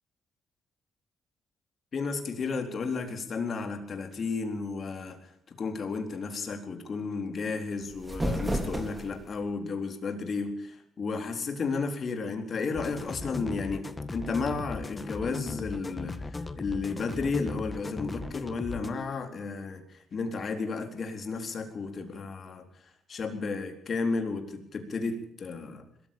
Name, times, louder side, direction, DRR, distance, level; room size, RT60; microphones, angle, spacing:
voice 1, 1.9-5.3 5.6-13.9 14.1-22.6 23.1-25.8, left 4 dB, 45° left, 5 dB, 4.1 m, -33 dB
sound 1, 7.8-9.4, right 1 dB, 15° right, 4.2 m, -32 dB
sound 2, 12.7-18.9, left 3 dB, 25° left, 1.7 m, -38 dB
21.0 x 14.5 x 8.8 m, 0.69 s
cardioid pair, 90°, 0 cm